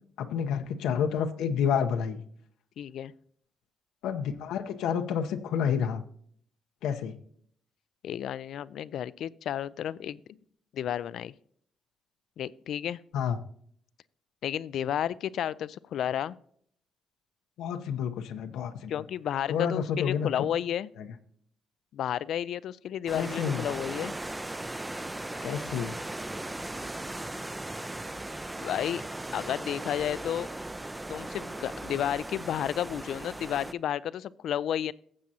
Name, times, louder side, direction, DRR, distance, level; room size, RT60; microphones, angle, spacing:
voice 1, 0.2-2.2 4.0-6.0 6.8-7.1 13.1-13.4 17.6-19.0 19.5-20.3 21.0-21.1 23.1-23.6 25.4-26.0, left 7 dB, 90° left, 7 dB, 0.7 m, -29 dB
voice 2, 2.8-3.1 8.0-10.2 10.7-11.3 12.4-13.0 14.4-16.4 18.9-20.9 21.9-24.1 28.6-29.0 29.3-30.5 31.1-34.9, left 10 dB, 70° left, 19 dB, 0.3 m, -32 dB
sound 1, 23.1-33.7, right 1 dB, 15° right, 0.4 m, -38 dB
15.0 x 7.5 x 2.8 m, 0.62 s
cardioid pair, 90°, 0 cm